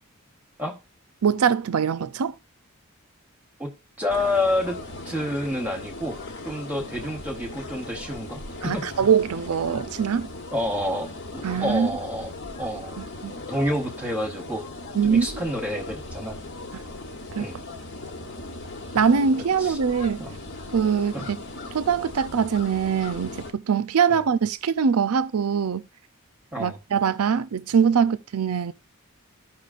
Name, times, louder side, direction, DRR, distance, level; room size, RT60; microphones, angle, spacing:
voice 1, 1.2-2.3 8.6-10.3 11.4-11.9 13.0-13.3 14.9-15.3 17.3-17.5 18.9-20.2 20.7-21.4 21.7-25.8 26.6-28.7, right 6 dB, 85° right, 0.5 m, -23 dB
voice 2, 4.0-4.8 5.0-8.9 10.5-12.3 12.6-13.0 13.5-14.7 15.0-16.4 17.4-17.6 19.6-19.8 20.2-20.3 21.1-21.3 24.1-24.2 26.5-26.8, left 1 dB, 5° right, 1.0 m, -29 dB
sound 1, 4.1-23.5, left 2 dB, 55° left, 1.2 m, -38 dB
15.0 x 5.8 x 2.5 m
head